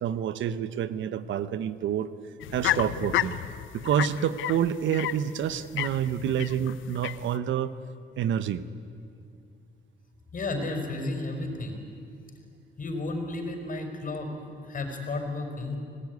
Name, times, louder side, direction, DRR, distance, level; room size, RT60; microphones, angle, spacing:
voice 1, 0.0-2.1 2.5-3.4 3.7-7.7 8.2-8.6, right 9 dB, 75° right, 13 dB, 1.0 m, -28 dB
sound 1, 2.4-7.4, left 13 dB, 75° left, 0.8 m, -32 dB
voice 2, 10.3-11.8 12.8-14.3 14.6-15.8, left 2 dB, 45° left, 4 dB, 5.3 m, -32 dB
25.5 x 18.5 x 9.6 m, 2.4 s
cardioid pair, 90°, 20 cm